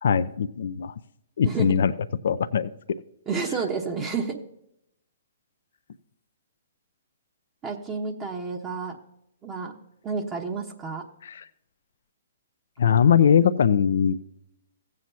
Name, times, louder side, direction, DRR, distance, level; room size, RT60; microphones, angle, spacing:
voice 1, 0.0-0.9 1.4-1.9 2.2-2.7 11.2-11.5 12.8-14.2, left 7 dB, 65° left, 13 dB, 0.5 m, -21 dB
voice 2, 3.3-4.4 7.6-9.0 9.4-9.7 10.0-11.0, right 5 dB, 25° right, 1 dB, 1.1 m, -30 dB
16.0 x 7.7 x 2.8 m, 0.77 s
figure-of-eight pair, 125°, 0 cm